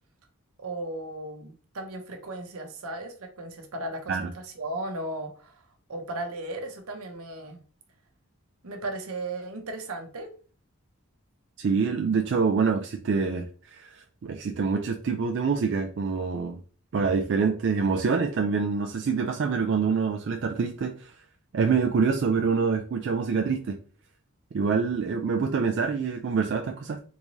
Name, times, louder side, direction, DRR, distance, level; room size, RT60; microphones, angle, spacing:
voice 1, 0.6-5.6 5.9-7.6 8.6-10.3, right 2 dB, 80° right, 0.8 m, -36 dB
voice 2, 11.6-16.6 16.9-21.1 21.5-23.8 24.5-27.0, right 5 dB, 55° right, 0.3 m, -26 dB
3.5 x 2.7 x 3.0 m
head